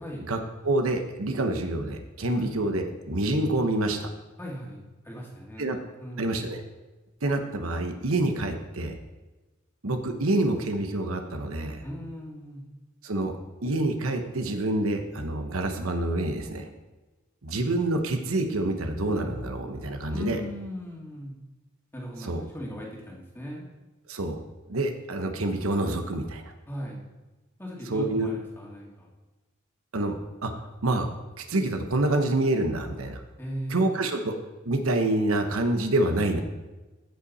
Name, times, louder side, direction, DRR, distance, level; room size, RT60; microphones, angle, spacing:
voice 1, 0.6-4.1 5.6-5.8 6.2-6.6 7.2-8.9 9.8-11.8 13.0-16.7 17.4-20.4 22.2-22.4 24.1-24.4 24.7-26.5 27.9-28.3 29.9-30.2 30.4-31.1 31.4-33.2 33.7-36.4, right 2 dB, 80° right, 6 dB, 1.0 m, -27 dB
voice 2, 4.4-4.8 5.0-6.4 11.8-12.6 20.1-21.4 21.9-23.7 26.7-27.0 27.6-29.1 33.4-34.0, equal, 10° left, -3 dB, 2.1 m, -38 dB
15.5 x 5.6 x 4.1 m, 1.2 s
head